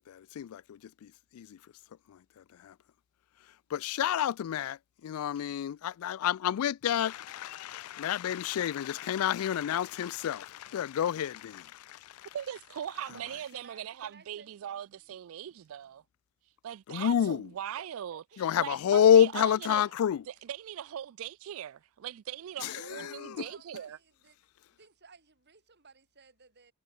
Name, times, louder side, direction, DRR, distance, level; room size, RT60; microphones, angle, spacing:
voice 1, 0.1-1.6 2.1-2.7 3.7-12.3 16.9-17.5 18.4-20.2 22.6-23.3, left 9 dB, 80° left, 0.3 m, -29 dB
voice 2, 12.3-16.0 16.6-18.2 18.6-19.8 20.3-24.0, right 10 dB, 65° right, 0.3 m, -40 dB
voice 3, 13.1-15.0 17.8-18.6 19.3-20.1 22.6-24.4 24.7-26.7, right 4 dB, 50° right, 3.0 m, -57 dB
head